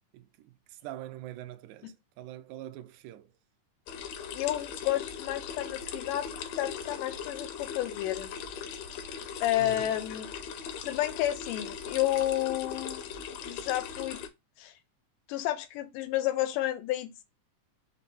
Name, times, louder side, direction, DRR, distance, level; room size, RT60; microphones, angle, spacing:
voice 1, 0.1-3.3 9.6-9.9, right 14 dB, 80° right, 1.8 m, -44 dB
sound 1, 3.9-14.3, left 7 dB, 75° left, 1.6 m, -39 dB
voice 2, 4.3-6.3 6.5-8.3 9.4-10.3 10.8-14.2 14.6-14.7 15.3-17.2, left 14 dB, 90° left, 2.3 m, -31 dB
5.1 x 3.0 x 2.7 m
omnidirectional pair, 3.7 m